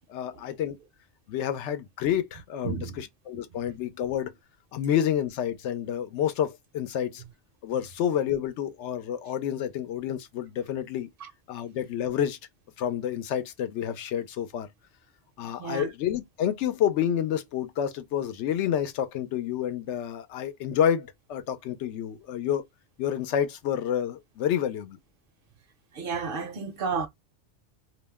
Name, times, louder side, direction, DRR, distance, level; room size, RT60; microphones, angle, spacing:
voice 1, 0.1-0.8 1.3-4.3 4.7-7.2 7.6-11.1 11.5-12.4 12.8-14.7 15.4-22.6 23.0-25.0, left 9 dB, 85° left, 0.9 m, -29 dB
voice 2, 2.6-3.0 7.2-7.3 11.2-11.3 15.4-15.9 25.9-27.1, right 5 dB, 60° right, 0.7 m, -32 dB
2.4 x 2.0 x 3.3 m
omnidirectional pair, 1.2 m